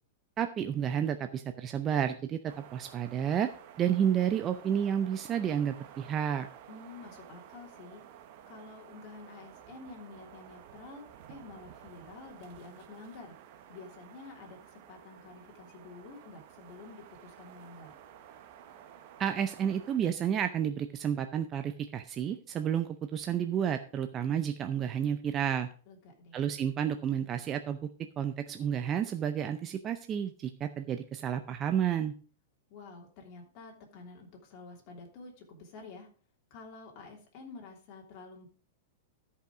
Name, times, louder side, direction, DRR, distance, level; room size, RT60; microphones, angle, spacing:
voice 1, 0.4-3.5 3.8-6.5 19.2-25.7 26.3-27.8 28.2-32.1, right 9 dB, 20° right, 7 dB, 0.5 m, -31 dB
sound 1, 2.4-20.0, right 10 dB, 45° right, 1.0 m, -53 dB
voice 2, 6.7-8.0 8.5-13.3 13.7-17.9 25.9-26.4 32.7-36.1 36.5-38.5, left 3 dB, 35° left, 0 dB, 3.0 m, -49 dB
13.0 x 5.6 x 4.9 m, 0.40 s
supercardioid pair, 160°, 0 cm